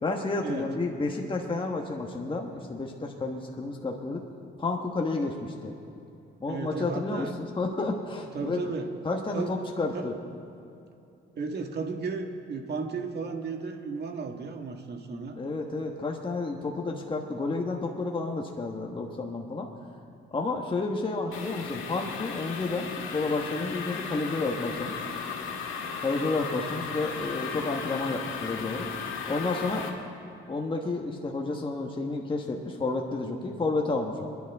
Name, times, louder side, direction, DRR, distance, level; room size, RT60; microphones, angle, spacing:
voice 1, 0.0-4.2 4.6-5.8 6.4-8.6 9.0-10.2 15.4-19.7 20.3-25.0 26.0-28.9 29.3-29.9 30.5-34.3, left 3 dB, 25° left, 1 dB, 1.4 m, -31 dB
voice 2, 6.4-7.3 8.3-8.9 9.3-9.5 9.9-10.1 11.4-15.4, right 4 dB, 55° right, 4 dB, 1.8 m, -34 dB
sound 1, 21.3-29.9, left 6 dB, 85° left, 1.9 m, -36 dB
27.5 x 10.5 x 3.6 m, 2.7 s
cardioid pair, 90°, 20 cm